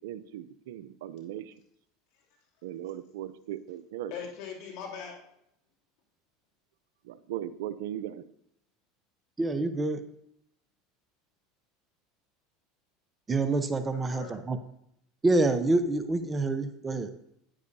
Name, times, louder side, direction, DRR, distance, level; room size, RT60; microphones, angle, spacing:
voice 1, 0.0-1.5 2.6-4.1 7.0-8.2, right 12 dB, 75° right, 15 dB, 0.5 m, -38 dB
voice 2, 4.1-5.2 13.9-14.4, left 7 dB, 65° left, -1 dB, 2.7 m, -40 dB
voice 3, 9.4-10.0 13.3-14.6 15.2-17.1, right 2 dB, 20° right, 9 dB, 0.8 m, -27 dB
9.8 x 9.5 x 2.7 m, 0.74 s
hypercardioid pair, 95°, 0 cm